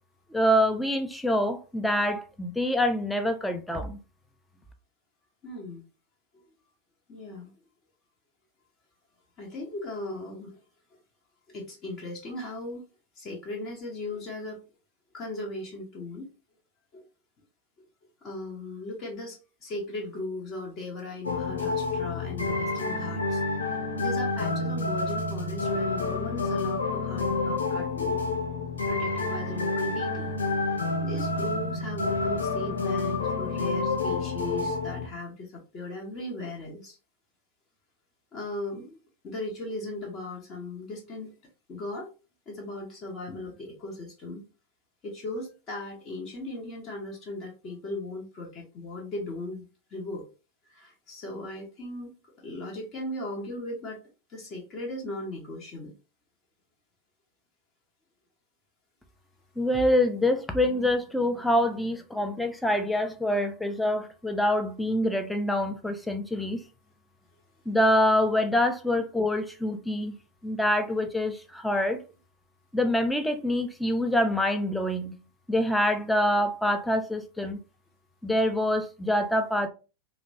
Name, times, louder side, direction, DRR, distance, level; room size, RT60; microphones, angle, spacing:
voice 1, 0.3-4.0 59.6-66.6 67.7-70.2 70.4-72.0 72.7-75.1 75.5-77.6 78.2-79.7, left 1 dB, 5° left, 0.4 m, -25 dB
voice 2, 5.4-5.8 7.1-7.5 9.4-10.6 11.5-12.8 13.1-14.6 15.1-16.3 16.9-17.0 18.2-23.4 23.9-28.4 28.9-30.3 31.0-37.0 38.3-39.0 39.2-41.3 41.7-42.1 42.5-44.4 45.0-50.3 50.7-54.0 54.3-55.9, left 2 dB, 30° left, 0.8 m, -37 dB
sound 1, 21.2-35.1, left 3 dB, 70° left, 0.5 m, -29 dB
2.9 x 2.0 x 2.6 m
figure-of-eight pair, 90°, 0 cm